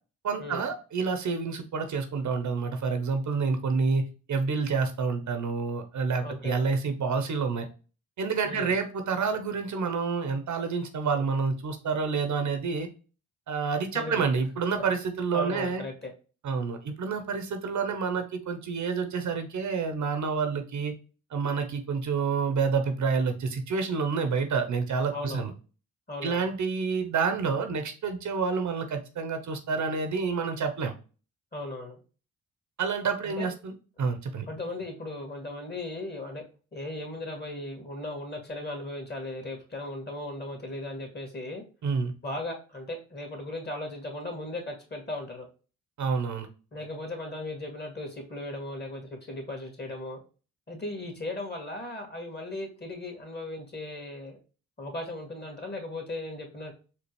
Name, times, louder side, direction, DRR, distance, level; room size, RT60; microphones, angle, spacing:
voice 1, 0.2-7.7 8.2-12.9 13.5-15.8 16.4-20.9 21.3-25.5 26.2-30.9 32.8-33.7 34.0-34.5 41.8-42.1 46.0-46.5, right 5 dB, 55° right, 7 dB, 0.7 m, -28 dB
voice 2, 6.2-6.6 8.4-8.8 13.9-14.3 15.3-16.1 25.1-25.4 26.1-26.5 31.5-32.0 33.2-33.5 34.5-36.4 36.7-41.6 42.2-45.5 46.7-50.2 50.7-54.4 54.8-56.7, left 2 dB, 30° left, 1 dB, 1.9 m, -37 dB
4.3 x 2.3 x 3.0 m, 0.35 s
supercardioid pair, 55°, 35 cm